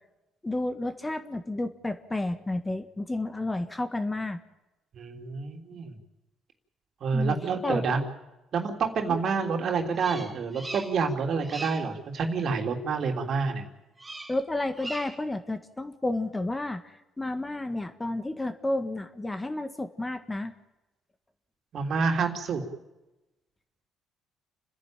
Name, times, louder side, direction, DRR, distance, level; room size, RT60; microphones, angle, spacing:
voice 1, 0.4-4.4 7.1-7.4 7.6-7.8 9.1-9.2 14.3-20.5, left 2 dB, 15° left, 9 dB, 1.7 m, -31 dB
voice 2, 4.9-5.9 7.0-8.0 8.5-13.7 21.7-22.6, right 5 dB, 60° right, 3 dB, 3.3 m, -28 dB
Bird vocalization bird call bird song, 9.9-11.1 11.4-11.9 14.0-14.4 14.7-15.3, right 2 dB, 20° right, 2.7 m, -40 dB
29.5 x 10.5 x 9.1 m, 0.99 s
supercardioid pair, 75°, 0 cm